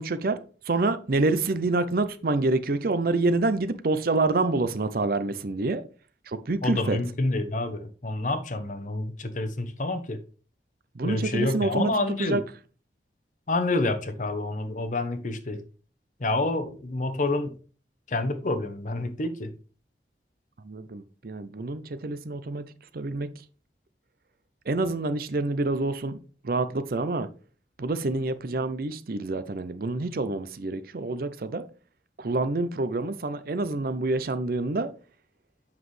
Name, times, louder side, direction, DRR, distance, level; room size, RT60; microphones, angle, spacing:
voice 1, 0.0-5.8 6.3-7.0 11.0-11.9 12.2-12.4 20.6-22.6 22.9-23.3 24.7-26.2 26.4-27.3 27.8-31.6 32.2-34.9, right 2 dB, 55° right, 0.6 m, -27 dB
voice 2, 6.6-10.2 11.0-12.4 13.5-15.6 16.2-17.6 18.1-19.5, left 2 dB, 45° left, 0.8 m, -28 dB
7.3 x 5.9 x 3.2 m
head